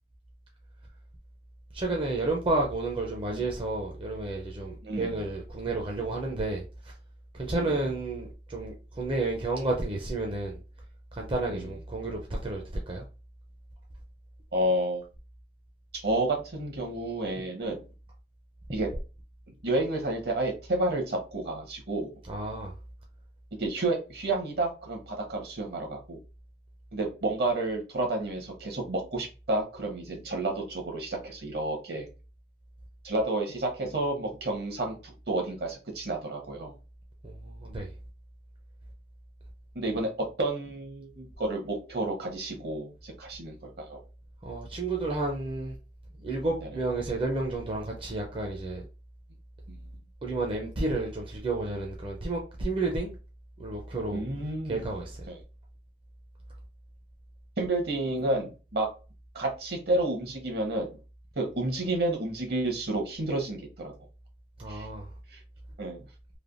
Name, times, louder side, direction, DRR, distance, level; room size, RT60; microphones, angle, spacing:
voice 1, 1.7-6.9 7.3-10.6 11.1-13.0 22.3-22.7 37.2-37.9 44.4-45.8 46.2-48.8 50.2-53.2 53.6-54.2 54.7-55.3 64.6-65.1, right 2 dB, 30° right, 0.5 m, -31 dB
voice 2, 4.8-5.2 7.5-7.8 11.5-11.7 14.5-15.1 15.9-17.8 18.7-18.9 19.6-22.1 23.6-26.2 26.9-32.1 33.0-36.7 39.7-44.0 46.6-46.7 49.7-49.8 54.1-54.8 55.3-55.4 57.6-58.9 59.3-60.9 61.4-63.9 64.7-64.9 65.3-65.4 65.8-66.0, right 2 dB, 65° right, 1.0 m, -30 dB
3.2 x 2.2 x 2.4 m
head